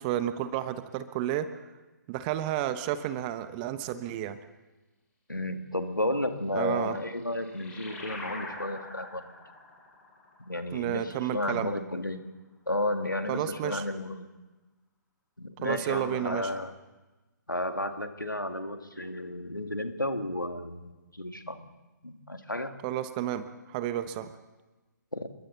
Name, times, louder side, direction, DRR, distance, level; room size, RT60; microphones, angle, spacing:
voice 1, 0.0-1.5 2.1-4.4 6.5-7.0 10.7-11.7 13.3-13.8 15.6-16.5 22.8-24.3, right 12 dB, 25° right, 12 dB, 1.2 m, -31 dB
voice 2, 5.3-9.3 10.4-12.2 12.7-14.3 15.4-16.8 17.5-21.7 22.0-22.7 25.1-25.3, left 1 dB, 90° left, 7 dB, 2.1 m, -32 dB
sound 1, 6.7-11.8, left 2 dB, 10° left, 4.5 m, -45 dB
30.0 x 22.0 x 4.1 m, 1.2 s
figure-of-eight pair, 130°, 10 cm